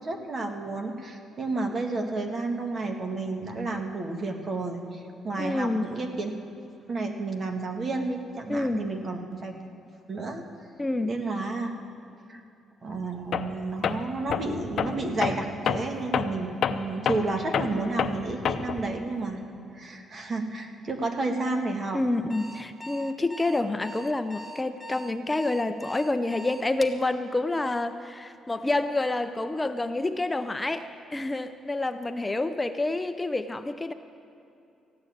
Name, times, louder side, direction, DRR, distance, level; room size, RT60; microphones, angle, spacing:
voice 1, 0.0-6.3 6.9-9.5 10.1-10.4 11.0-11.7 12.3-12.4 12.8-19.4 19.7-22.0, right 3 dB, 45° right, 4 dB, 1.7 m, -31 dB
voice 2, 5.4-5.9 8.5-8.9 10.8-11.1 21.9-33.9, left 2 dB, 15° left, 9 dB, 0.6 m, -28 dB
Tools, 13.3-13.6 13.8-18.9, left 7 dB, 60° left, 0.7 m, -28 dB
Alarm, 22.1-27.0, left 1 dB, ahead, 1.1 m, -42 dB
15.0 x 9.5 x 8.6 m, 2.7 s
cardioid pair, 90°, 0 cm